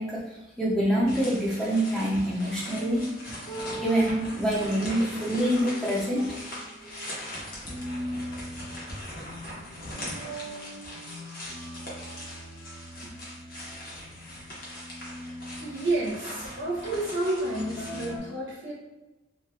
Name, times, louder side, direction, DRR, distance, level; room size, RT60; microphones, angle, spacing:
voice 1, 0.0-3.1 3.8-6.2, equal, ahead, -6 dB, 0.5 m, -26 dB
sound 1, 1.1-18.1, left 1 dB, 45° left, 0.7 m, -41 dB
sound 2, 2.7-18.2, right 1 dB, 70° left, 1.1 m, -41 dB
voice 2, 15.6-18.7, right 2 dB, 65° right, -6 dB, 0.6 m, -30 dB
2.3 x 2.1 x 2.9 m, 1.0 s
head